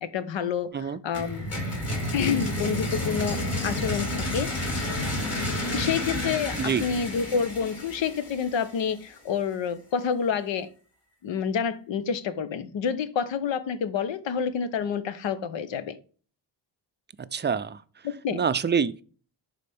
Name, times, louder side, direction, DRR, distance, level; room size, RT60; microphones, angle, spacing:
voice 1, 0.0-1.6 2.1-4.9 5.7-10.7 11.2-16.0 18.2-18.4, left 7 dB, 80° left, 1.0 m, -28 dB
sound 1, 1.1-8.9, left 1 dB, 35° left, 3.7 m, -30 dB
voice 2, 17.3-17.8 18.3-19.0, right 6 dB, 25° right, 0.4 m, -26 dB
11.0 x 4.2 x 3.5 m
wide cardioid pair, 130°, 45 cm